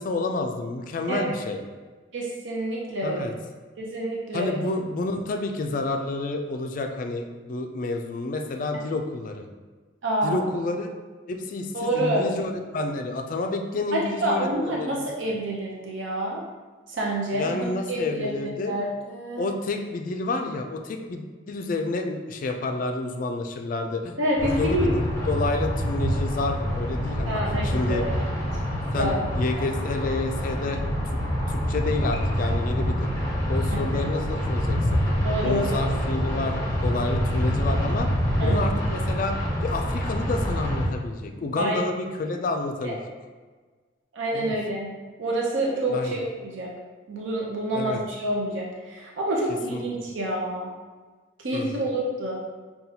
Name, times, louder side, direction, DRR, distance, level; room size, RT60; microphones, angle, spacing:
voice 1, 0.0-1.6 3.0-3.3 4.3-9.5 10.2-10.9 11.3-15.1 17.3-18.8 19.4-24.2 24.4-28.0 28.9-30.8 31.1-31.2 31.5-33.1 33.5-35.0 35.4-36.6 36.8-38.1 38.4-43.0 44.3-44.6 45.9-46.1 47.7-48.0 49.7-49.8 51.5-51.9, left 2 dB, 45° left, 4 dB, 0.3 m, -29 dB
voice 2, 2.1-3.3 3.8-4.6 10.0-10.5 11.7-12.2 13.9-16.4 16.9-19.4 24.2-24.9 27.2-28.1 29.0-29.2 29.5-29.6 33.7-33.8 35.2-35.6 38.4-38.7 41.6-41.8 42.8-42.9 44.1-44.9 45.2-46.7 47.1-50.7 51.4-52.4, right 1 dB, 70° right, -3 dB, 0.5 m, -28 dB
sound 1, 24.4-40.9, equal, 15° left, 0.7 m, -26 dB
5.6 x 2.3 x 2.7 m, 1.4 s
head